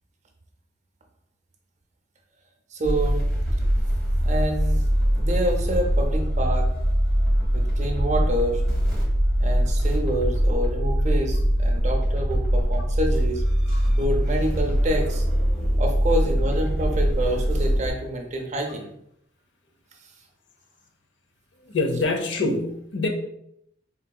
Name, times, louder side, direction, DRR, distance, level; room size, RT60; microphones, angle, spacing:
voice 1, 2.7-3.2 4.2-4.8 5.2-6.7 7.5-8.6 9.4-13.4 14.0-15.3 15.8-18.9, right 1 dB, 40° right, 2 dB, 0.5 m, -27 dB
sound 1, 2.8-17.9, equal, ahead, 1.1 m, -22 dB
voice 2, 21.6-23.1, left 2 dB, 70° left, 3 dB, 0.6 m, -25 dB
3.9 x 2.7 x 2.2 m, 0.74 s
head